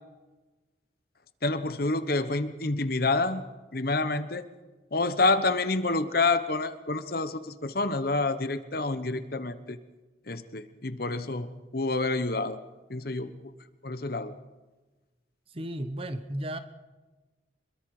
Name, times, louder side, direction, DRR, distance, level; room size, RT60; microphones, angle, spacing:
voice 1, 1.4-3.4 3.7-4.4 4.9-9.8 10.3-11.5 11.7-12.6 12.9-13.3 13.8-14.3, left 3 dB, 50° left, 11 dB, 1.1 m, -28 dB
voice 2, 15.5-16.6, right 1 dB, 30° right, 10 dB, 1.1 m, -34 dB
26.0 x 22.5 x 5.0 m, 1.2 s
head